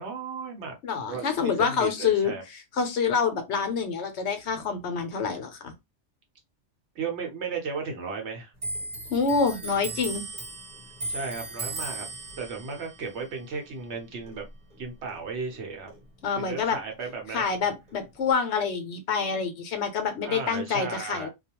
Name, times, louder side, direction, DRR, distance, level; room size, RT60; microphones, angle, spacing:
voice 1, 0.0-0.8 1.1-2.4 6.9-8.5 11.1-12.1 12.4-14.5 14.8-15.9 16.4-17.4 20.2-21.3, right 5 dB, 65° right, 1.0 m, -35 dB
voice 2, 0.8-5.7 9.1-10.2 16.2-16.8 17.3-21.3, left 5 dB, 70° left, 0.9 m, -27 dB
Clock, 8.6-15.6 15.9-17.2 17.5-18.3, right 2 dB, 35° right, 1.0 m, -38 dB
2.4 x 2.2 x 2.8 m
omnidirectional pair, 1.3 m